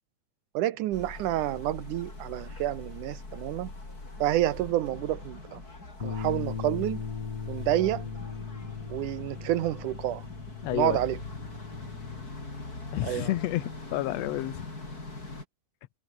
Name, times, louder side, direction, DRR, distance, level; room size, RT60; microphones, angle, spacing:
voice 1, 0.5-3.7 4.2-5.6 6.0-7.0 7.5-8.0 8.9-10.3 10.7-11.2 13.0-13.3, right 14 dB, 80° right, 2.3 m, -29 dB
sound 1, 0.9-15.4, left 2 dB, 25° left, 5.8 m, -42 dB
Bass guitar, 6.0-12.3, left 5 dB, 45° left, 4.0 m, -38 dB
voice 2, 10.6-11.0 12.9-14.7, left 17 dB, 85° left, 1.5 m, -30 dB
omnidirectional pair, 3.8 m